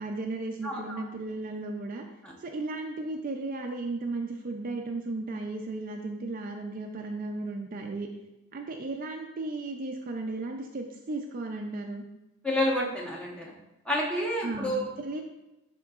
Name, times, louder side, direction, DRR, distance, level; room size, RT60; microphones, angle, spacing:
voice 1, 0.0-2.0 2.4-8.1 8.5-12.0 14.4-15.2, right 2 dB, 40° right, 3 dB, 0.4 m, -35 dB
voice 2, 0.6-1.0 12.4-13.5 13.9-14.9, left 1 dB, 5° left, -4 dB, 1.0 m, -29 dB
10.5 x 3.7 x 2.4 m, 0.96 s
head